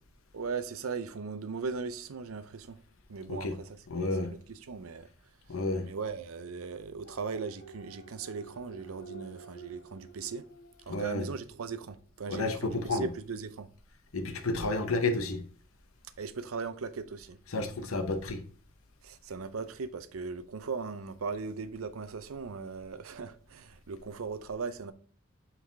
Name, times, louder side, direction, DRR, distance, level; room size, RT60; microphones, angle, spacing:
voice 1, 0.3-2.8 3.1-5.1 5.8-10.4 10.9-13.7 16.2-17.4 19.0-24.9, right 5 dB, 85° right, 0.6 m, -38 dB
voice 2, 3.9-4.3 5.5-5.9 10.9-11.3 12.3-13.1 14.1-15.4 17.5-18.4, left 2 dB, 85° left, 0.9 m, -31 dB
sound 1, 7.0-11.5 11.9-12.0, right 5 dB, 65° left, 2.6 m, -50 dB
5.7 x 4.8 x 3.4 m
head